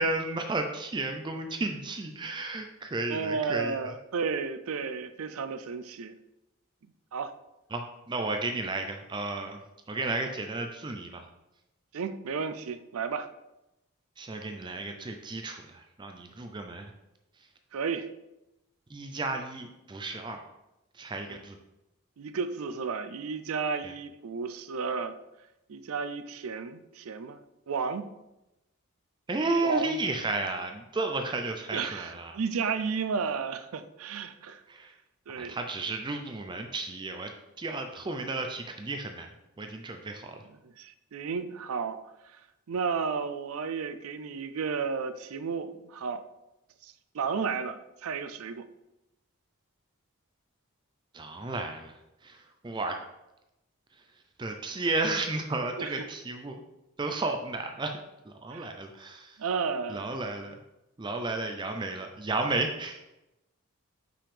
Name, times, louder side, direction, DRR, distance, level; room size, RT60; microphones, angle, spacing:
voice 1, 0.0-3.9 7.7-9.6 9.9-11.3 14.2-16.9 18.9-20.4 20.9-21.6 23.8-23.9 29.3-32.4 34.7-34.9 35.4-37.3 37.6-39.3 39.6-40.4 51.1-52.0 52.2-53.0 54.4-56.6 57.0-58.0 58.3-59.4 59.9-60.5 61.0-63.0, right 2 dB, 20° right, 4 dB, 0.4 m, -33 dB
voice 2, 3.1-6.2 7.1-7.3 11.9-13.3 17.7-18.1 21.3-21.4 22.2-25.1 25.7-27.4 27.7-28.1 29.6-30.0 31.7-34.6 35.3-35.6 40.6-42.0 42.3-42.4 42.7-46.2 46.8-48.7 55.8-56.1 58.5-58.7 59.4-60.1, right 5 dB, 75° right, 11 dB, 0.5 m, -33 dB
5.9 x 5.1 x 3.3 m, 0.92 s
head